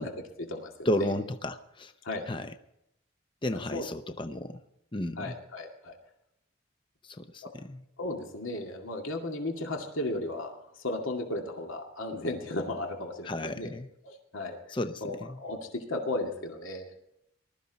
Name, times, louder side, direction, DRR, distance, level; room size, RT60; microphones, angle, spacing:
voice 1, 0.0-0.9 2.0-2.3 3.7-3.9 5.2-6.0 7.4-7.5 8.0-13.7 14.0-14.6 15.0-16.9, left 2 dB, 80° left, 2 dB, 2.2 m, -35 dB
voice 2, 0.9-1.9 2.3-2.5 3.4-4.6 4.9-5.3 7.0-7.8 13.3-13.9 14.7-15.4, left 1 dB, 25° left, 9 dB, 0.6 m, -33 dB
20.5 x 13.0 x 4.1 m, 0.80 s
head